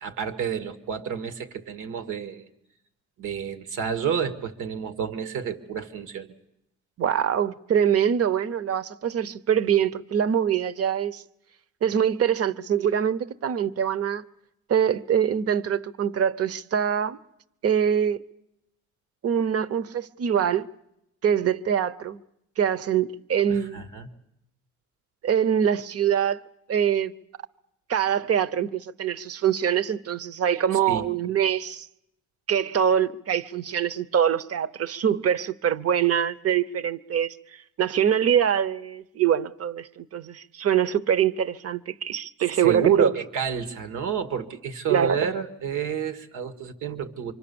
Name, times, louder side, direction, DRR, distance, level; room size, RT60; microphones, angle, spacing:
voice 1, 0.0-2.5 3.2-6.3 23.5-24.1 30.9-31.2 42.6-47.3, right 7 dB, 85° right, 1.9 m, -29 dB
voice 2, 7.0-11.2 11.8-14.2 14.7-17.2 17.6-18.2 19.2-20.7 21.2-22.2 22.6-23.8 25.2-26.4 26.7-27.1 27.9-31.9 32.5-37.4 37.8-43.1 44.9-45.2, right 9 dB, 50° right, 0.9 m, -24 dB
26.0 x 24.5 x 7.0 m
cardioid pair, 90°, 30 cm